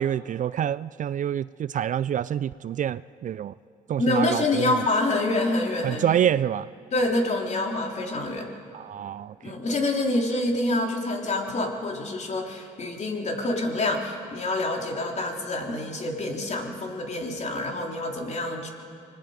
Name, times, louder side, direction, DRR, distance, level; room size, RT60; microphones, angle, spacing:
voice 1, 0.0-3.5 3.9-4.8 5.8-6.7 8.7-9.5, right 10 dB, 45° right, 17 dB, 0.4 m, -27 dB
voice 2, 4.0-6.2 6.9-8.5 9.4-18.7, left 2 dB, 40° left, 1 dB, 3.4 m, -27 dB
25.5 x 20.0 x 5.1 m, 2.4 s
supercardioid pair, 70°, 18 cm